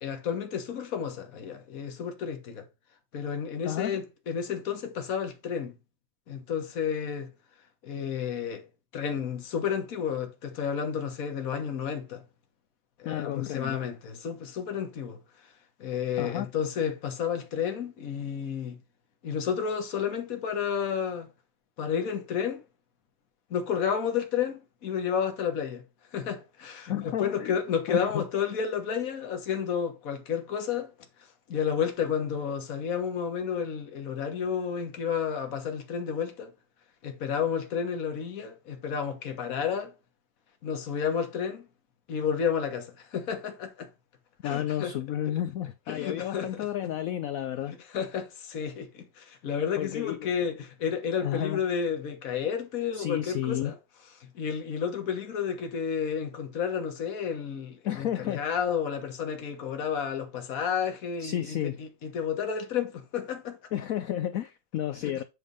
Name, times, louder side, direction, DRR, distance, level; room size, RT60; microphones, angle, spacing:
voice 1, 0.0-2.7 3.1-5.8 6.3-7.3 7.8-8.6 8.9-12.2 13.0-15.2 15.8-18.8 19.2-21.3 21.8-22.6 23.5-25.8 26.1-30.9 31.5-36.5 37.0-39.9 40.6-41.7 42.1-43.9 44.4-44.9 45.9-46.7 47.9-53.8 54.2-63.6 65.0-65.2, left 7 dB, 50° left, 1.7 m, -31 dB
voice 2, 3.6-4.0 13.0-13.8 16.2-16.5 26.9-27.6 27.9-28.2 44.4-47.8 49.8-50.3 51.2-51.6 52.9-53.7 57.8-58.4 61.2-61.8 63.7-65.2, left 11 dB, 85° left, 0.7 m, -31 dB
8.3 x 3.6 x 5.3 m
omnidirectional pair, 2.0 m